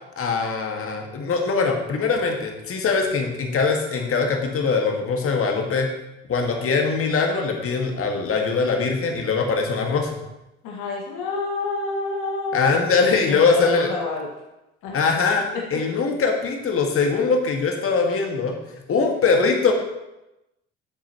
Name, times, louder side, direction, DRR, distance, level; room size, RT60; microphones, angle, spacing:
voice 1, 0.2-5.9 6.3-10.1 12.5-13.9 14.9-15.4 15.7-18.5 18.9-19.7, left 4 dB, 40° left, 2 dB, 1.9 m, -22 dB
voice 2, 10.6-12.8 13.1-14.3 14.8-15.0 15.5-15.6, left 3 dB, 60° left, -1 dB, 1.9 m, -29 dB
13.0 x 7.4 x 3.0 m, 0.95 s
figure-of-eight pair, 60°, 35 cm